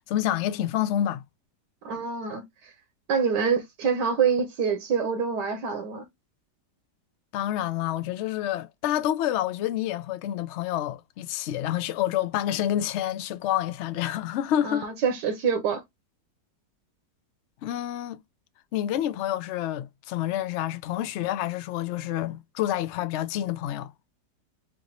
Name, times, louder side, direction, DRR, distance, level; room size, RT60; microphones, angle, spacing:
voice 1, 0.1-1.2 7.3-14.9 17.6-18.2 18.7-23.9, left 12 dB, 80° left, 0.6 m, -28 dB
voice 2, 1.8-2.7 3.1-6.0 14.6-15.8, right 6 dB, 80° right, 1.5 m, -26 dB
4.8 x 2.6 x 2.9 m
omnidirectional pair, 1.8 m